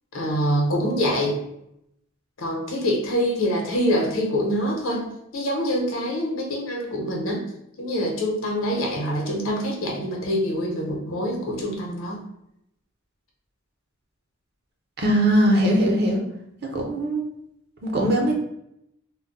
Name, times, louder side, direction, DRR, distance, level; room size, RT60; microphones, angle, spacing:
voice 1, 0.1-1.4 2.4-7.4 7.8-12.2, equal, 80° left, 0 dB, 0.7 m, -25 dB
voice 2, 15.0-16.2 16.7-17.2 17.8-18.3, right 1 dB, 50° right, 0 dB, 0.6 m, -20 dB
2.1 x 2.0 x 3.8 m, 0.79 s
head